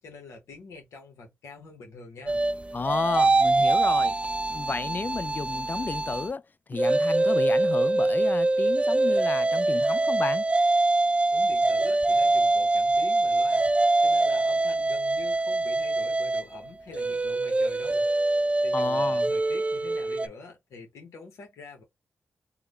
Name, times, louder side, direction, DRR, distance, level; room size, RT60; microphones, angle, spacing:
voice 1, 0.0-2.4 11.3-13.7 14.0-18.0 18.6-21.8, left 3 dB, 85° left, 1.0 m, -45 dB
sound 1, 2.3-6.3 6.7-20.3, right 2 dB, 25° right, 0.5 m, -24 dB
voice 2, 2.7-4.2 4.5-6.4 6.7-10.4 18.7-19.3, left 4 dB, 40° left, 0.3 m, -32 dB
3.6 x 2.2 x 3.1 m
supercardioid pair, 45°, 5 cm